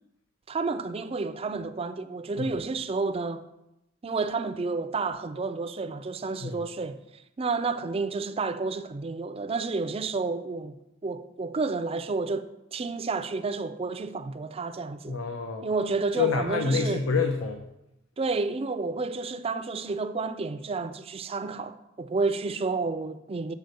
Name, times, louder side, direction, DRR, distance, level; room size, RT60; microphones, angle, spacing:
voice 1, 0.5-3.4 4.0-7.0 7.4-15.2 15.6-17.0 18.2-23.5, right 4 dB, 30° right, 0.4 m, -30 dB
voice 2, 15.1-15.7 16.2-17.6, left 5 dB, 85° left, 0.7 m, -27 dB
8.3 x 4.1 x 6.5 m
head